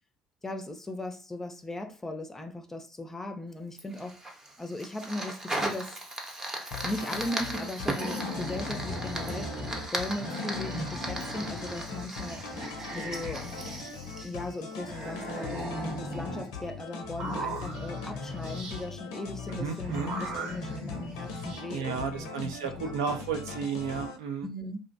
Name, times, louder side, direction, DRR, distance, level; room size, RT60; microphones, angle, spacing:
voice 1, 0.4-4.2 4.6-6.0 6.8-9.6 9.9-12.5 12.9-13.5 14.2-15.7 16.0-22.6 24.4-24.8, left 1 dB, 15° left, 0.5 m, -38 dB
Fire, 3.8-15.2, right 1 dB, 20° right, 0.7 m, -38 dB
sound 1, 6.7-24.2, left 5 dB, 70° left, 0.5 m, -41 dB
sound 2, 8.0-9.9 10.1-11.9 12.2-14.3 14.8-16.5 17.0-18.9 19.8-21.6, equal, 50° right, 0.9 m, -38 dB
voice 2, 19.5-20.1 21.7-24.5, right 6 dB, 75° right, 0.3 m, -33 dB
2.5 x 2.1 x 2.5 m
figure-of-eight pair, 60°, 2 cm